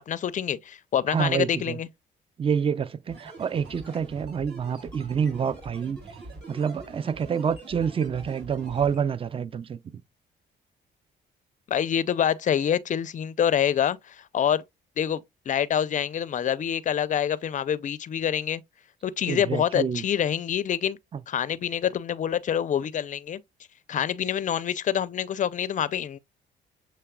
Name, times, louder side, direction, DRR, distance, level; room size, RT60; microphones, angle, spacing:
voice 1, 0.1-1.9 11.7-14.6 15.0-18.6 19.0-21.0 21.3-23.4 23.9-26.2, left 9 dB, 40° left, 0.4 m, -26 dB
voice 2, 1.1-1.8 2.4-6.0 6.5-9.8 19.3-20.0, right 7 dB, 30° right, 0.4 m, -27 dB
sound 1, 3.1-9.0, right 2 dB, 55° right, 3.0 m, -44 dB
6.8 x 3.1 x 2.2 m
cardioid pair, 90°, 20 cm